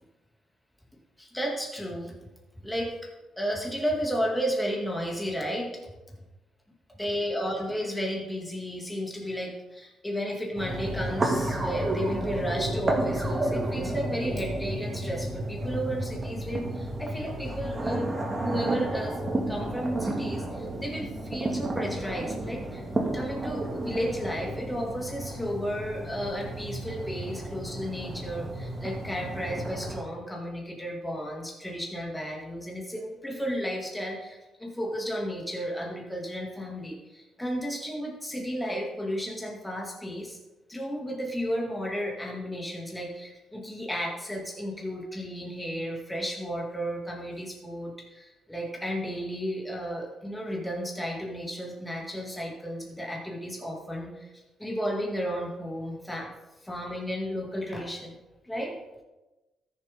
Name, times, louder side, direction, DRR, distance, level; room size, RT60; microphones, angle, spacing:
voice 1, 1.2-2.1 2.6-3.1 3.4-5.8 7.0-19.2 19.5-40.4 40.7-56.3 56.6-58.2 58.4-58.8, equal, 5° left, -1 dB, 2.5 m, -33 dB
sound 1, 10.6-30.0, right 1 dB, 30° right, 2.1 m, -32 dB
14.0 x 7.1 x 3.8 m, 1.1 s
cardioid pair, 90°, 0 cm